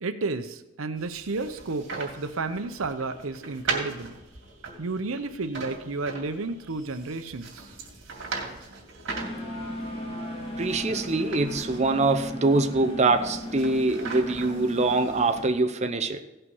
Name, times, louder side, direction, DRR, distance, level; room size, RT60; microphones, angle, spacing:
voice 1, 0.0-4.2 4.8-7.7, right 3 dB, 85° right, 0.8 m, -32 dB
sound 1, 1.0-15.5, right 4 dB, 65° right, 2.6 m, -39 dB
sound 2, 9.1-15.5, left 1 dB, 30° left, 1.9 m, -36 dB
voice 2, 10.6-16.2, right 3 dB, 35° right, 0.6 m, -24 dB
16.5 x 5.6 x 5.5 m
head